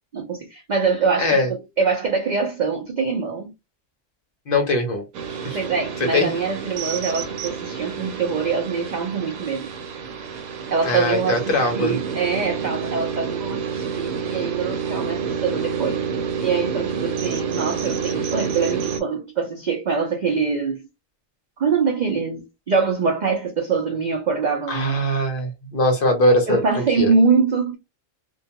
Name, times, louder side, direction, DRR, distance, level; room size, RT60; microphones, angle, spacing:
voice 1, 0.1-3.5 5.5-9.7 10.7-16.0 16.4-20.8 21.6-25.0 26.5-27.8, right 5 dB, 65° right, 0.4 m, -24 dB
voice 2, 1.2-1.5 4.5-5.0 5.4-5.6 6.1-6.3 10.8-12.0 24.7-27.1, left 1 dB, 55° left, 0.7 m, -21 dB
sound 1, 5.1-19.0, right 6 dB, 90° right, 1.0 m, -29 dB
2.3 x 2.2 x 2.8 m
omnidirectional pair, 1.3 m